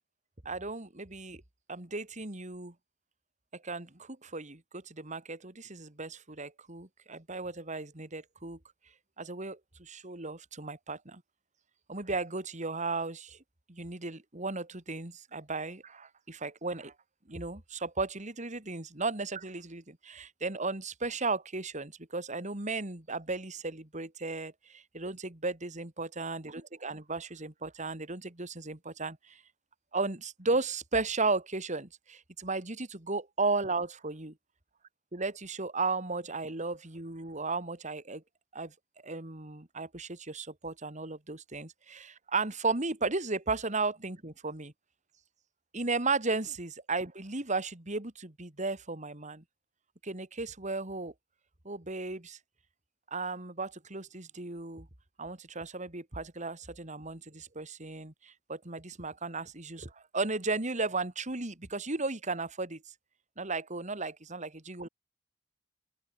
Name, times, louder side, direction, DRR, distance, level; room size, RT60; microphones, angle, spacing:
voice 1, 0.4-1.4 1.7-2.7 3.5-8.6 9.2-11.2 11.9-13.4 13.7-16.9 17.3-29.4 29.9-34.3 35.1-38.2 38.5-38.7 39.0-44.7 45.7-49.4 50.0-51.1 51.6-52.4 53.1-54.9 55.2-62.8 63.4-64.9, right 3 dB, 40° right, 2.7 m, -35 dB
open air
head